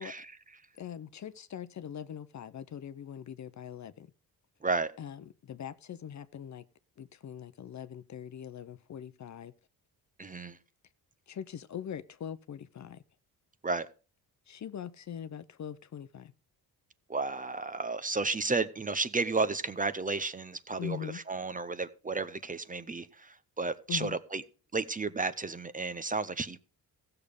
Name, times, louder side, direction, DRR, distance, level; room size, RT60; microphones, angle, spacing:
voice 1, 0.0-0.6 4.6-4.9 10.2-10.6 13.6-13.9 17.1-24.4 24.7-26.6, right 3 dB, 20° right, 0.7 m, -33 dB
voice 2, 0.8-4.1 5.0-5.2 5.4-6.6 7.0-9.5 11.3-13.0 14.5-16.3 20.8-21.2 23.9-24.1, left 9 dB, 50° left, 0.7 m, -42 dB
15.5 x 6.8 x 5.0 m
cardioid pair, 100°, 38 cm